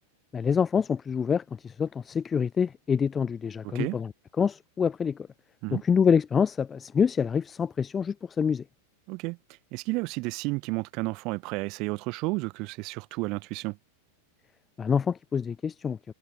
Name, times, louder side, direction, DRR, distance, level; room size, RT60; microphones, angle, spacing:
voice 1, 0.3-4.1 4.4-5.3 5.7-8.6 14.8-16.0, left 6 dB, 20° left, 7.7 m, -26 dB
voice 2, 3.6-4.0 5.6-5.8 9.1-9.4 9.7-13.8, right 26 dB, 40° right, 3.5 m, -32 dB
figure-of-eight pair, 90°, 0 cm